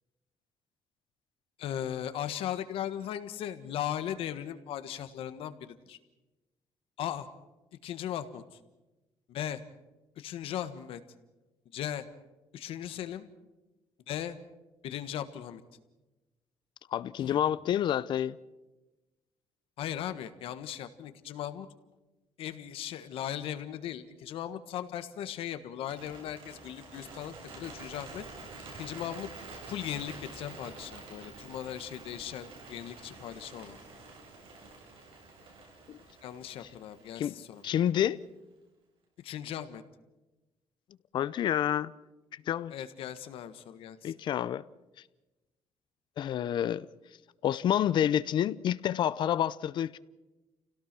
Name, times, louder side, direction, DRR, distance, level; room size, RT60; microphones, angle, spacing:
voice 1, 1.6-6.0 7.0-7.3 7.8-8.4 9.3-9.6 10.2-11.0 11.7-12.0 12.5-13.3 14.1-14.4 14.8-15.6 17.2-17.4 19.8-21.7 22.4-28.2 28.7-29.3 29.7-33.8 36.2-37.6 39.2-39.8 42.7-44.1, left 10 dB, 75° left, 1.5 m, -38 dB
voice 2, 16.9-18.4 35.9-36.0 37.2-37.3 37.6-38.2 41.1-41.9 42.3-42.7 44.0-44.6 46.2-46.9 47.4-50.0, left 10 dB, 55° left, 0.6 m, -28 dB
Bird, 25.8-38.0, right 3 dB, 70° right, 7.7 m, -48 dB
29.0 x 17.5 x 6.1 m
cardioid pair, 160°, 9 cm